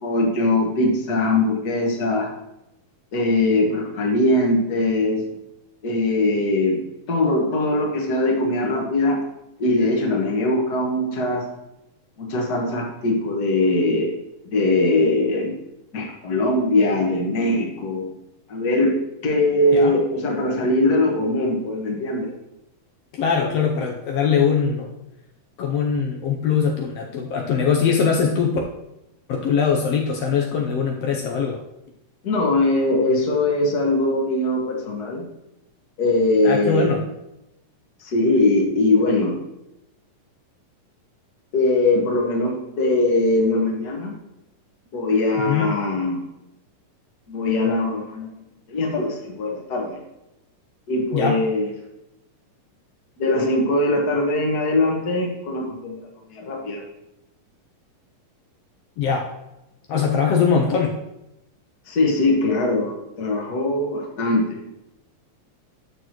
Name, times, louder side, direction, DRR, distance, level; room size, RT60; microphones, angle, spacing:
voice 1, 0.0-2.3 3.1-5.2 5.8-6.8 7.1-9.2 9.6-11.4 12.2-14.1 14.4-15.5 15.9-18.1 18.5-18.9 19.2-22.3 32.2-35.2 36.0-36.9 38.0-39.4 41.5-44.1 44.9-46.2 47.3-48.3 48.7-50.0 50.9-51.7 53.2-56.8 61.9-64.6, left 2 dB, 45° left, 0 dB, 1.3 m, -21 dB
voice 2, 23.1-24.9 25.6-28.6 29.3-31.6 36.4-37.0 45.4-45.7 51.1-51.4 59.0-59.3 59.9-60.9, left 6 dB, 90° left, 0 dB, 1.4 m, -21 dB
11.0 x 6.6 x 3.1 m, 0.89 s
omnidirectional pair, 3.9 m